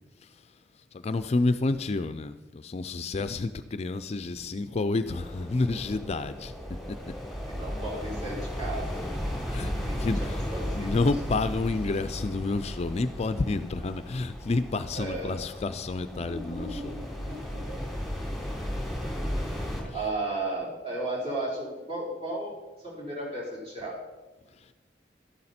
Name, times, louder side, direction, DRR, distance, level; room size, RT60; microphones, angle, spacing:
voice 1, 0.9-6.5 6.9-7.0 9.5-9.7 10.0-10.4 10.7-17.0 17.3-17.4 19.8-19.9, left 3 dB, 35° left, 12 dB, 0.4 m, -29 dB
sound 1, 5.0-19.8, equal, ahead, 3.2 m, -35 dB
voice 2, 7.5-9.1 9.8-10.1 10.5-10.9 14.9-15.4 16.1-17.9 19.9-24.0, right 2 dB, 30° right, -4 dB, 4.6 m, -35 dB
12.5 x 10.5 x 4.3 m, 1.2 s
head